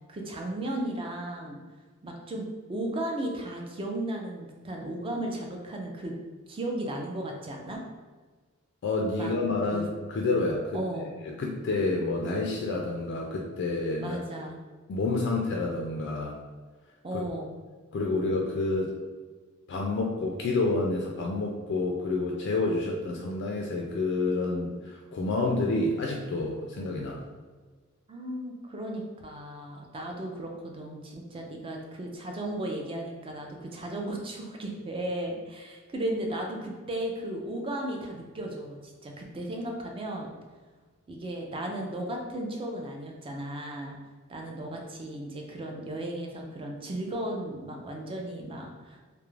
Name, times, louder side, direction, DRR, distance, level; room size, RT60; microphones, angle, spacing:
voice 1, 0.1-1.6 2.0-6.1 6.5-7.8 9.2-9.3 9.7-9.9 10.7-11.1 14.0-14.6 17.0-17.5 28.1-40.3 41.1-43.9 44.3-49.1, right 1 dB, 25° right, 1 dB, 0.4 m, -35 dB
voice 2, 8.8-10.8 11.2-14.2 14.9-16.4 17.1-17.2 17.9-18.9 19.7-27.2, left 3 dB, 55° left, -1 dB, 0.3 m, -29 dB
2.3 x 2.0 x 3.1 m, 1.4 s
head